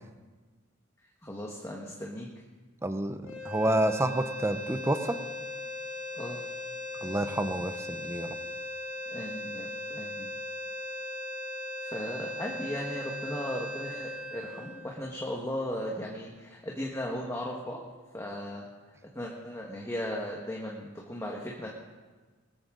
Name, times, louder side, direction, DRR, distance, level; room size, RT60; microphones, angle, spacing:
voice 1, 1.2-2.3 6.1-6.4 9.1-10.3 11.8-17.8 18.1-18.7 19.1-21.7, left 1 dB, 15° left, -2 dB, 1.6 m, -36 dB
voice 2, 2.8-5.2 7.0-8.4, right 1 dB, 15° right, 9 dB, 0.8 m, -29 dB
sound 1, 3.2-15.5, left 2 dB, 85° left, 3.5 m, -38 dB
21.0 x 13.5 x 3.9 m, 1.3 s
head